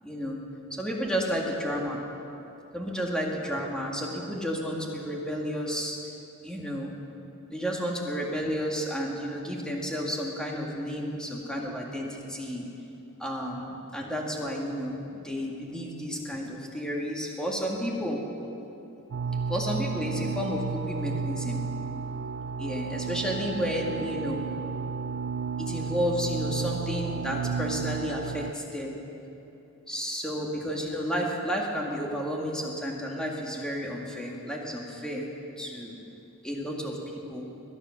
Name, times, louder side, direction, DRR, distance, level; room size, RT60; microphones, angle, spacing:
voice 1, 0.0-0.4 0.7-2.0 2.7-6.0 6.4-6.9 7.5-12.7 13.2-18.2 19.5-21.6 22.6-24.4 25.6-29.0 29.9-35.3 35.6-36.0 36.4-37.5, equal, 5° left, -1 dB, 1.9 m, -32 dB
sound 1, 19.1-28.5, right 5 dB, 80° right, 0.5 m, -32 dB
22.0 x 9.8 x 6.4 m, 2.9 s
head